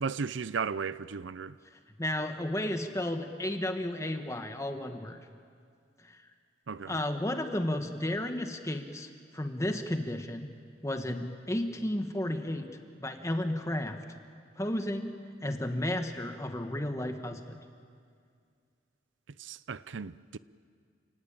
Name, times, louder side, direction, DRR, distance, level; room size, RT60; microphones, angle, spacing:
voice 1, 0.0-1.6 6.7-6.9 19.4-20.4, right 5 dB, 80° right, 0.5 m, -35 dB
voice 2, 2.0-5.2 6.0-6.2 6.9-10.5 10.8-12.7 13.0-14.0 14.6-15.1 15.4-17.6, left 1 dB, 15° left, 1.5 m, -33 dB
29.0 x 19.0 x 8.9 m
head